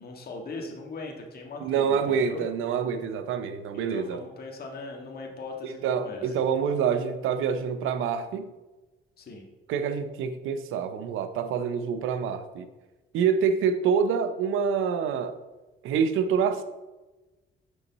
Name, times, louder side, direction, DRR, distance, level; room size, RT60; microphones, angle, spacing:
voice 1, 0.0-2.4 3.7-6.4 9.2-9.4, left 3 dB, 50° left, 0 dB, 1.6 m, -40 dB
voice 2, 1.6-4.2 5.6-8.5 9.7-12.7 13.1-15.3 15.8-16.6, right 7 dB, 85° right, 10 dB, 0.6 m, -26 dB
6.8 x 5.3 x 4.1 m, 1.1 s
cardioid pair, 90°, 20 cm